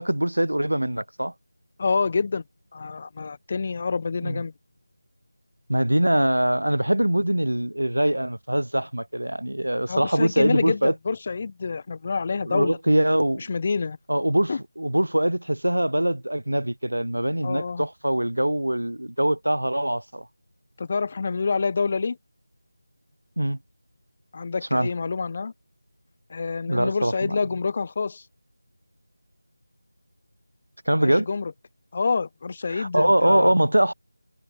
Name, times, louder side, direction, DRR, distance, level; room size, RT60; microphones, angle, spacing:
voice 1, 0.0-1.3 4.2-4.4 5.7-10.9 12.5-13.5 14.1-20.3 23.4-23.6 24.7-24.9 26.7-27.4 30.9-31.3 32.7-33.9, right 1 dB, 75° right, 3.1 m, -23 dB
voice 2, 1.8-2.4 2.7-4.5 9.9-12.8 13.4-14.0 14.5-14.6 17.4-17.8 20.8-22.2 24.3-25.5 26.3-28.3 31.0-31.5 31.9-33.5, left 4 dB, 30° left, 2.2 m, -27 dB
figure-of-eight pair, 165°, 0 cm